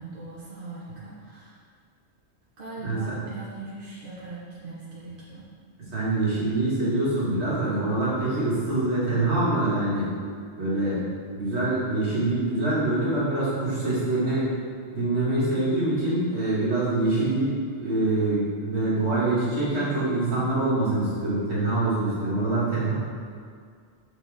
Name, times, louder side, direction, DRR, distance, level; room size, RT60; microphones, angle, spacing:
voice 1, 0.0-1.5 2.6-5.5, right 2 dB, 50° right, -9 dB, 1.2 m, -40 dB
voice 2, 2.8-3.1 5.9-10.1 10.6-11.0 11.3-14.5 14.9-22.9, right 2 dB, 65° right, -8 dB, 2.0 m, -25 dB
6.8 x 4.6 x 3.4 m, 2.1 s
omnidirectional pair, 1.2 m